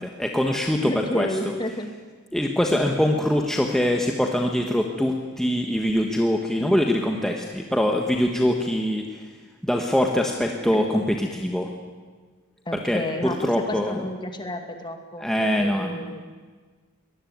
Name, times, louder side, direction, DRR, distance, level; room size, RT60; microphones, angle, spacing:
voice 1, 0.0-1.3 2.3-9.3 9.6-11.7 12.8-14.0 15.2-16.0, left 1 dB, ahead, 1 dB, 1.3 m, -23 dB
voice 2, 0.9-1.9 10.7-10.8 12.7-16.2, left 1 dB, 20° left, 5 dB, 2.4 m, -31 dB
23.5 x 19.5 x 9.5 m, 1.5 s
head